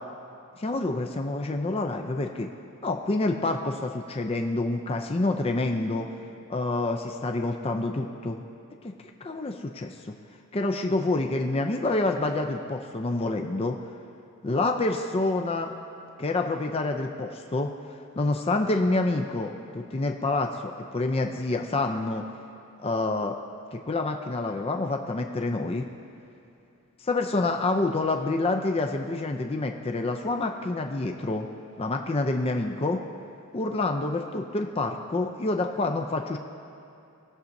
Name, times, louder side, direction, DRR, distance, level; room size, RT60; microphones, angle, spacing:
voice 1, 0.6-2.5 2.8-6.1 6.5-8.4 8.8-8.9 9.2-9.9 10.5-13.7 14.4-15.7 16.2-17.7 18.2-22.2 22.8-23.4 23.7-25.9 27.0-31.5 31.8-33.0 33.5-36.4, left 2 dB, 25° left, 3 dB, 0.5 m, -27 dB
20.0 x 7.0 x 2.7 m, 2.7 s
head